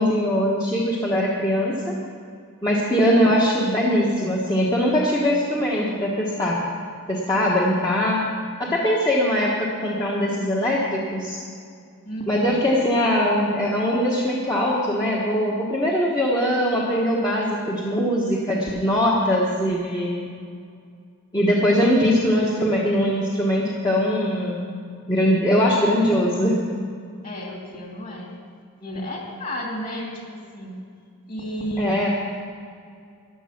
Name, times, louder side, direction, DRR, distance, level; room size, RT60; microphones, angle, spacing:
voice 1, 0.0-1.9 2.6-6.6 7.1-8.2 8.6-11.4 12.3-20.3 21.3-24.7 25.1-26.6 28.9-29.1 31.8-32.1, equal, 15° left, -5 dB, 1.3 m, -21 dB
voice 2, 12.0-12.6 27.2-28.3 28.8-30.8 31.3-32.1, equal, 35° left, -1 dB, 2.8 m, -32 dB
14.0 x 11.0 x 6.0 m, 2.3 s
head